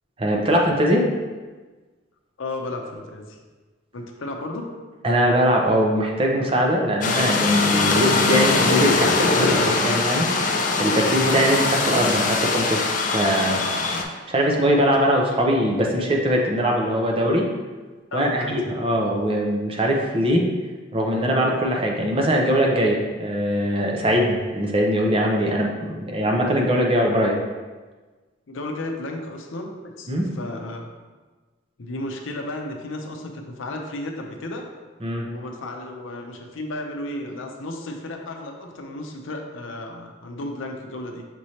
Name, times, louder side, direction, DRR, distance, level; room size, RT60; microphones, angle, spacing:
voice 1, 0.2-1.1 5.0-13.6 14.3-17.5 18.1-20.5 20.9-27.4 30.1-30.3 35.0-35.3, equal, 30° right, 0 dB, 0.5 m, -21 dB
voice 2, 2.4-3.4 3.9-4.7 18.1-18.6 28.5-30.9 31.8-34.7 35.2-41.2, left 1 dB, 85° left, 2 dB, 0.6 m, -33 dB
sound 1, 7.0-14.0, left 3 dB, 40° left, 0.4 m, -22 dB
6.0 x 3.1 x 2.8 m, 1.3 s
head